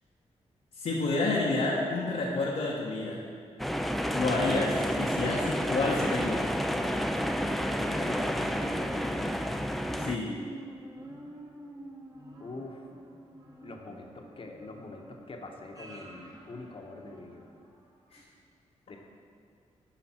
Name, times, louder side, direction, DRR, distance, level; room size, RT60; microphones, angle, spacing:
voice 1, 0.7-3.2 4.1-6.5 10.0-10.3 18.1-18.2, left 3 dB, 75° left, -5 dB, 1.0 m, -29 dB
sound 1, 3.6-10.2, equal, ahead, 0.4 m, -30 dB
sound 2, 6.3-17.7 18.2-18.3, right 1 dB, 30° right, 1.3 m, -48 dB
voice 2, 7.7-9.4 12.4-12.9 13.6-17.5 18.9-19.0, left 2 dB, 45° left, 2 dB, 1.0 m, -43 dB
10.0 x 5.0 x 4.3 m, 2.3 s
cardioid pair, 65°, 12 cm